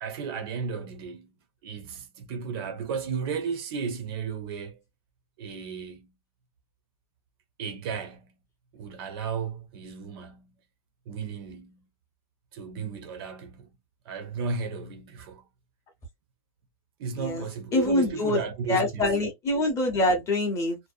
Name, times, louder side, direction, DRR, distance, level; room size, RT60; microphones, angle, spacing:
voice 1, 0.0-1.3 1.6-4.8 5.4-6.1 7.6-8.4 8.7-10.6 11.1-11.9 12.5-13.8 14.1-15.5 17.0-19.2, right 5 dB, 40° right, 0.5 m, -34 dB
voice 2, 17.7-18.4 18.7-20.8, left 1 dB, 15° left, 0.6 m, -25 dB
2.6 x 2.0 x 2.4 m
supercardioid pair, 165°, 19 cm